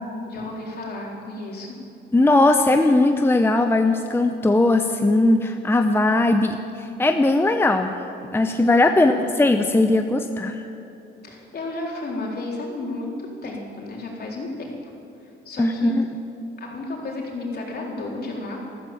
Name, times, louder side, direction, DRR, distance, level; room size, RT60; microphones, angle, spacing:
voice 1, 0.3-1.8 8.9-9.3 11.2-14.9 15.2-15.9 16.6-18.7, left 2 dB, 55° left, -2 dB, 4.0 m, -33 dB
voice 2, 2.1-7.9 8.3-10.6 15.6-16.1, left 2 dB, 10° left, 6 dB, 0.8 m, -19 dB
14.0 x 14.0 x 7.4 m, 3.0 s
cardioid pair, 90°, 20 cm